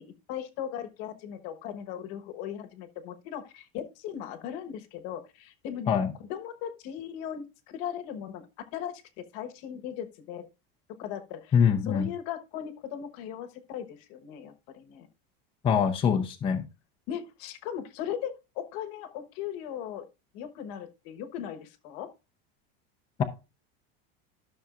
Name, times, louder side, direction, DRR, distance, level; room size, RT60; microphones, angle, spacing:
voice 1, 0.0-5.9 6.3-8.5 8.7-8.9 9.3-10.4 11.0-11.5 11.9-15.1 17.1-20.1 20.3-22.1, left 9 dB, 50° left, 1.2 m, -38 dB
voice 2, 11.5-12.1 15.6-16.7, left 7 dB, 20° left, 0.7 m, -24 dB
13.5 x 6.3 x 2.4 m
supercardioid pair, 160°, 30 cm